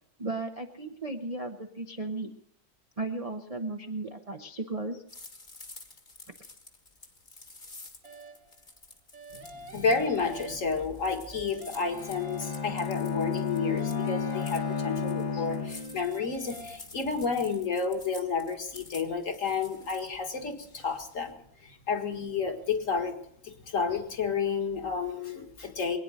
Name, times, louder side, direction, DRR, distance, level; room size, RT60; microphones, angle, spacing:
voice 1, 0.2-2.3 3.0-5.0, right 2 dB, 30° right, 3 dB, 0.7 m, -35 dB
sound 1, 5.1-21.3, left 3 dB, 25° left, 1.7 m, -50 dB
sound 2, 8.0-8.6 9.1-11.0 11.3-13.1 13.5-15.3 15.7-16.8, right 1 dB, 70° right, 2.6 m, -47 dB
voice 2, 9.6-21.4 21.6-23.2 23.4-26.0, left 5 dB, 45° left, 6 dB, 2.0 m, -31 dB
Bowed string instrument, 11.7-16.4, left 6 dB, 60° left, 1.9 m, -33 dB
22.5 x 9.6 x 6.4 m, 0.73 s
omnidirectional pair, 2.1 m